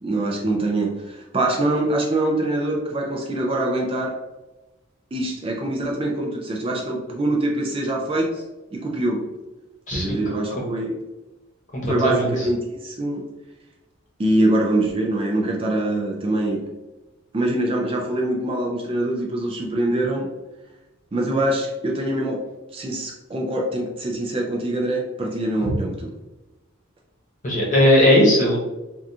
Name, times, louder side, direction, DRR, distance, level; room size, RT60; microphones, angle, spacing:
voice 1, 0.0-4.2 5.1-8.4 8.7-9.2 9.9-11.0 11.9-13.3 14.2-16.6 17.3-20.3 21.1-22.4 22.7-26.1, right 1 dB, 25° right, 0 dB, 0.4 m, -24 dB
voice 2, 9.9-10.2 11.7-12.3 25.6-25.7 27.4-28.6, left 1 dB, 35° left, -3 dB, 0.9 m, -18 dB
3.5 x 2.4 x 2.7 m, 1.1 s
head